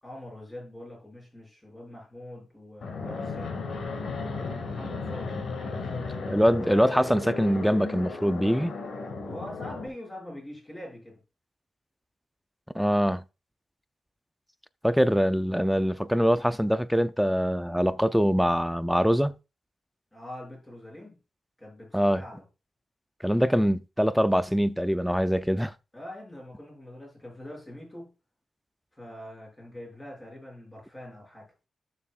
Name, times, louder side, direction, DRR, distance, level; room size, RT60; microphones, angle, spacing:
voice 1, 0.0-3.6 4.2-6.2 9.3-11.2 20.1-21.2 21.6-22.4 25.9-28.1 28.9-31.5, left 1 dB, 15° left, 6.3 m, -43 dB
Fixed-wing aircraft airplane, 2.8-9.9, left 4 dB, 75° left, 2.1 m, -35 dB
voice 2, 6.3-8.7 12.7-13.2 14.8-19.3 21.9-22.2 23.2-25.7, equal, ahead, 0.5 m, -23 dB
15.0 x 6.9 x 2.5 m
cardioid pair, 100°, 0 cm